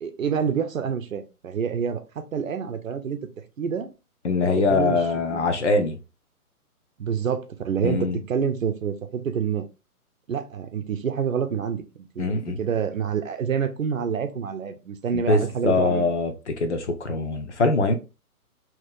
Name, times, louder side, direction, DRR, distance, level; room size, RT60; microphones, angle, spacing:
voice 1, 0.0-3.2 3.6-3.9 4.4-5.0 5.3-5.5 7.0-9.7 10.3-16.0, right 7 dB, 60° right, 0.7 m, -27 dB
voice 2, 4.2-6.0 7.8-8.2 12.2-12.6 15.1-18.0, left 3 dB, 50° left, 0.8 m, -23 dB
3.0 x 2.8 x 3.7 m
hypercardioid pair, 175°, 45 cm